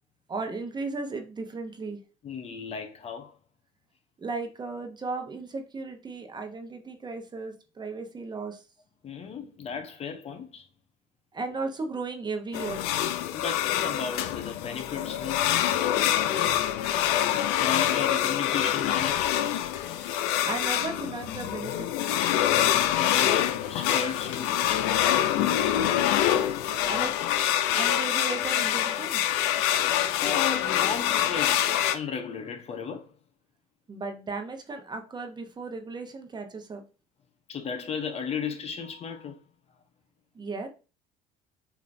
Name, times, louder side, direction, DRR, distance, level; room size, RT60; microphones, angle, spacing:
voice 1, 0.3-2.0 4.2-8.6 11.3-12.9 20.4-21.9 26.7-27.1 27.8-29.2 33.9-36.8 40.3-40.7, right 3 dB, 25° right, 1.0 m, -35 dB
voice 2, 2.2-3.4 9.0-10.7 13.3-15.4 17.6-19.4 22.6-24.9 29.8-31.7 31.9-33.1 37.5-39.4, left 6 dB, 40° left, 0.8 m, -35 dB
sound 1, 12.5-32.0, left 11 dB, 80° left, 0.5 m, -25 dB
6.7 x 2.8 x 2.6 m
supercardioid pair, 90°, 16 cm